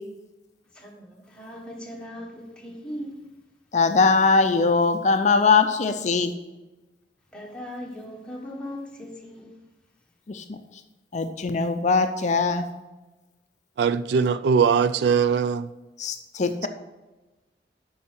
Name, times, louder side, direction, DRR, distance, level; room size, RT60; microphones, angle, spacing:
voice 1, 0.7-3.1 7.3-9.5, equal, 5° left, 1.5 m, -38 dB
voice 2, 3.7-6.3 10.3-10.6 11.1-12.7 16.0-16.7, left 4 dB, 40° left, 0.5 m, -21 dB
voice 3, 13.8-15.7, right 6 dB, 70° right, 0.3 m, -21 dB
8.5 x 5.6 x 5.5 m
head